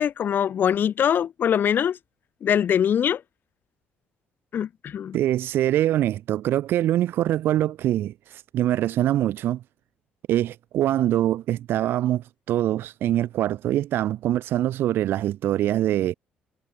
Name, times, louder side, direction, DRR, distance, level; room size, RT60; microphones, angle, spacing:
voice 1, 0.0-2.0 2.4-3.2 4.5-5.2, left 9 dB, 55° left, 4.5 m, -23 dB
voice 2, 5.1-9.6 10.3-16.1, right 13 dB, 70° right, 2.6 m, -24 dB
supercardioid pair, 65°, 4 cm